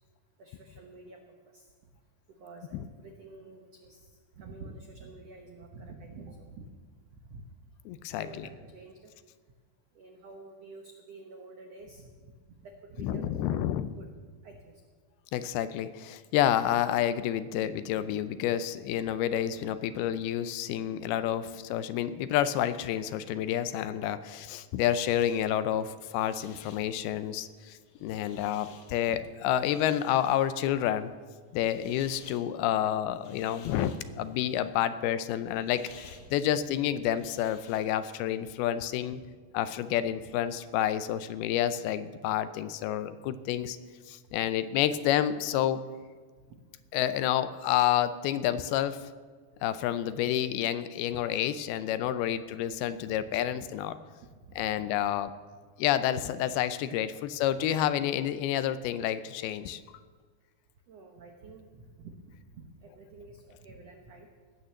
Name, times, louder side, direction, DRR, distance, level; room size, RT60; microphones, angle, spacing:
voice 1, 0.4-1.9 2.3-6.7 7.1-7.7 8.2-9.1 9.9-13.6 14.0-14.1 14.4-14.8 21.4-21.5 27.0-27.1 28.7-28.8 29.1-29.2 40.2-40.3 46.5-46.6 53.0-53.3 54.2-54.9 60.9-64.3, right 3 dB, 75° right, 3 dB, 1.4 m, -49 dB
voice 2, 7.9-8.5 13.0-13.9 15.3-31.1 31.5-35.9 36.3-39.2 39.5-43.8 44.1-45.8 46.9-49.0 49.6-54.0 54.6-55.3 55.8-59.8, left 11 dB, 80° left, 12 dB, 2.5 m, -29 dB
sound 1, 24.7-38.2, left 5 dB, 60° left, 1.9 m, -55 dB
18.0 x 9.3 x 7.1 m, 1.5 s
omnidirectional pair, 4.6 m